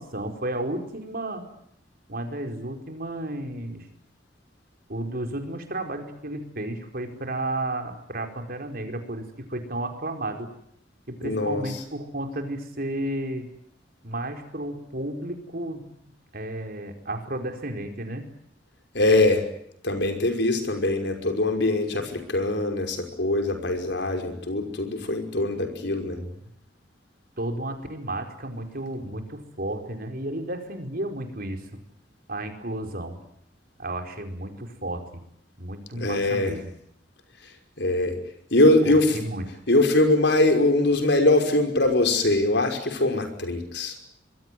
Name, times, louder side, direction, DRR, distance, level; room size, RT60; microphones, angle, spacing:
voice 1, 0.0-1.4 2.1-3.9 4.9-10.5 11.1-13.5 14.0-15.8 16.3-18.3 26.1-26.5 27.4-31.8 32.3-33.2 33.8-35.2 35.6-36.7 38.8-39.6, right 1 dB, 50° right, 5 dB, 4.8 m, -32 dB
voice 2, 11.2-11.6 18.9-19.4 19.8-26.2 35.9-36.5 37.8-38.2 38.5-39.2 39.7-43.9, left 2 dB, 65° left, 5 dB, 5.7 m, -22 dB
26.0 x 22.0 x 9.4 m, 0.72 s
head